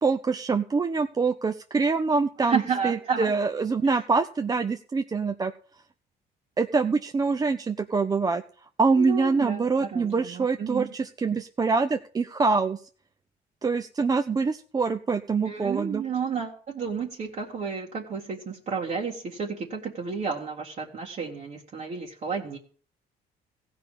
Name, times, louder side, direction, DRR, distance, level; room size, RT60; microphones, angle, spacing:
voice 1, 0.0-5.5 6.6-8.4 8.8-12.8 13.6-16.0, right 4 dB, 20° right, 8 dB, 0.6 m, -25 dB
voice 2, 2.4-3.3 3.8-4.0 9.0-10.9 15.4-22.6, right 5 dB, 45° right, -2 dB, 1.9 m, -31 dB
15.5 x 5.5 x 8.4 m, 0.43 s
cardioid pair, 110°, 17 cm